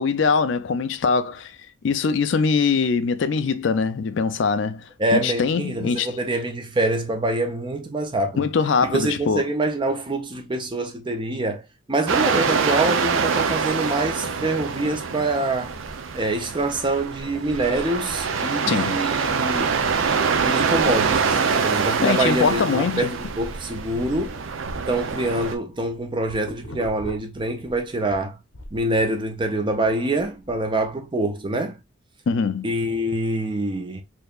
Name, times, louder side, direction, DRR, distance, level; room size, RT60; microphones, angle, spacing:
voice 1, 0.0-1.5 1.8-4.8 5.1-6.1 8.4-9.5 18.7-19.0 22.0-23.1 32.3-32.7, left 5 dB, 65° left, 0.4 m, -22 dB
voice 2, 5.0-8.4 8.8-15.7 16.1-19.8 20.4-24.4 24.9-28.4 28.7-31.8 32.6-34.0, right 2 dB, 25° right, 0.5 m, -25 dB
sound 1, 12.1-25.5, right 5 dB, 85° right, 0.6 m, -25 dB
sound 2, 25.8-28.2 28.5-30.9, left 1 dB, 85° left, 0.9 m, -40 dB
4.4 x 2.8 x 2.4 m
head